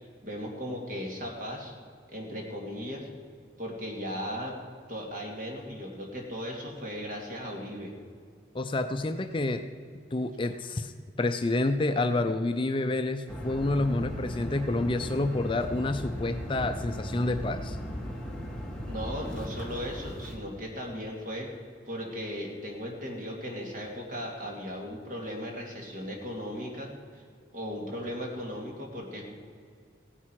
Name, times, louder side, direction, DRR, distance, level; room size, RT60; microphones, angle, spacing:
voice 1, 0.2-1.7 2.1-3.1 3.6-4.6 4.9-7.9 18.8-21.5 21.9-27.2 27.5-29.3, equal, 45° right, 0 dB, 2.5 m, -37 dB
voice 2, 8.5-9.6 10.1-10.9 11.2-17.8, left 2 dB, 25° left, 8 dB, 0.4 m, -28 dB
sound 1, 13.3-20.4, equal, 5° left, 1.6 m, -37 dB
16.0 x 10.0 x 4.7 m, 2.1 s
head